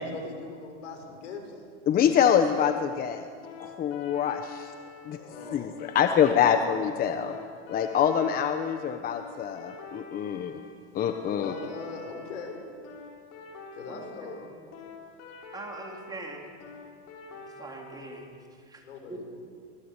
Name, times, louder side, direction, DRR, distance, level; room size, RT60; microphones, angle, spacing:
voice 1, 0.0-1.4 5.1-6.4 11.3-12.6 13.7-14.4 18.8-19.3, left 4 dB, 85° left, 3 dB, 6.5 m, -41 dB
voice 2, 1.9-3.3 3.6-4.7 5.0-5.2 5.5-7.4 7.7-10.5 10.9-11.5, left 8 dB, 25° left, 8 dB, 1.0 m, -25 dB
sound 1, 3.4-18.3, left 3 dB, 45° left, 4.8 m, -46 dB
voice 3, 13.9-14.3 15.5-16.4 17.3-18.3 18.7-18.8 19.1-19.2, right 2 dB, 10° right, 1 dB, 3.6 m, -42 dB
24.5 x 20.0 x 8.4 m, 2.3 s
supercardioid pair, 135°, 35 cm